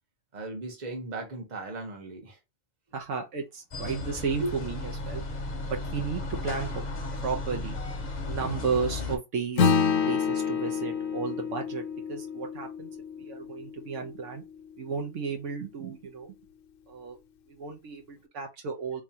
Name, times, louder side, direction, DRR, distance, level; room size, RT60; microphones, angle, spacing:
voice 1, 0.3-2.4 4.4-4.5, right 2 dB, 35° right, 1.2 m, -36 dB
voice 2, 2.9-5.2 5.7-6.8 7.2-7.8 8.2-9.7 10.0-12.9 13.2-14.4 14.8-16.4 16.9-17.2 17.5-19.0, right 5 dB, 75° right, 1.1 m, -33 dB
sound 1, 3.7-9.2, left 2 dB, 40° left, 0.8 m, -35 dB
Acoustic guitar / Strum, 9.6-14.4, left 6 dB, 75° left, 1.0 m, -28 dB
3.6 x 3.0 x 2.7 m
omnidirectional pair, 1.3 m